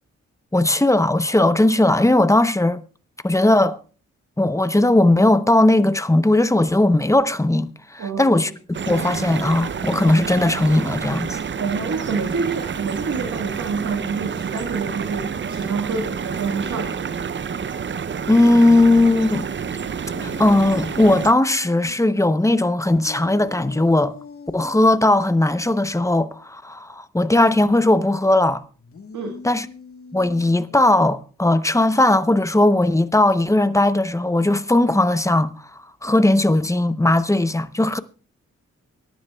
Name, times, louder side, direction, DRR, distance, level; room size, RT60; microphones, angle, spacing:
voice 1, 0.5-2.8 3.2-3.8 4.4-8.5 8.9-11.4 18.3-19.5 20.2-24.1 24.5-28.6 29.4-29.7 30.1-35.5 36.0-38.0, left 1 dB, 10° left, 0.7 m, -18 dB
voice 2, 8.0-8.5 11.6-17.2 29.1-29.4, right 5 dB, 90° right, 1.5 m, -27 dB
sound 1, 8.7-21.3, right 6 dB, 40° right, 0.5 m, -29 dB
sound 2, 20.0-22.0 23.0-25.0 28.8-31.0, left 5 dB, 50° left, 1.3 m, -41 dB
24.0 x 11.0 x 2.3 m
cardioid pair, 75°, 29 cm